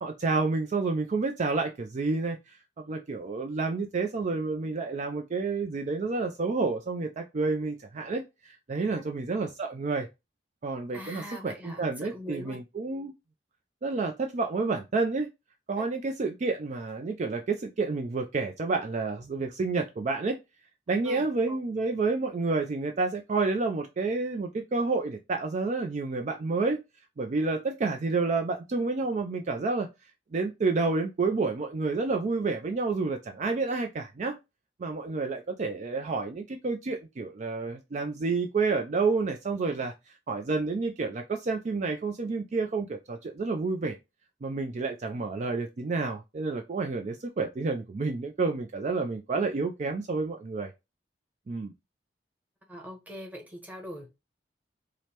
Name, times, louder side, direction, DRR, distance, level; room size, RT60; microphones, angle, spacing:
voice 1, 0.0-10.1 10.6-13.1 13.8-15.3 15.7-20.4 20.9-26.8 27.2-29.9 30.3-34.3 34.8-39.9 40.3-44.0 44.4-50.7 51.5-51.7, right 3 dB, 40° right, 0.4 m, -29 dB
voice 2, 10.9-12.6 15.8-15.9 21.0-21.6 52.7-54.2, equal, 10° right, 1.0 m, -42 dB
4.8 x 2.1 x 2.8 m
head